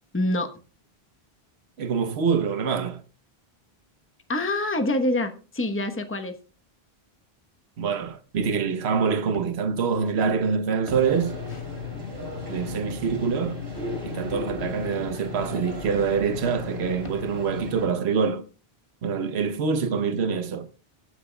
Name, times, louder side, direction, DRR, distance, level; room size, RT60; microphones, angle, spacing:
voice 1, 0.1-0.5 4.3-6.4, left 1 dB, 15° left, 1.0 m, -25 dB
voice 2, 1.8-3.0 7.8-11.4 12.5-13.6 14.1-18.4 19.0-20.7, right 6 dB, 80° right, 1.1 m, -25 dB
sound 1, 9.1-10.3 10.7-11.8 13.7-14.4 14.6-18.3, left 1 dB, 30° left, 1.4 m, -45 dB
sound 2, 10.9-17.9, left 3 dB, 55° right, 3.5 m, -35 dB
23.5 x 9.5 x 2.3 m
omnidirectional pair, 1.1 m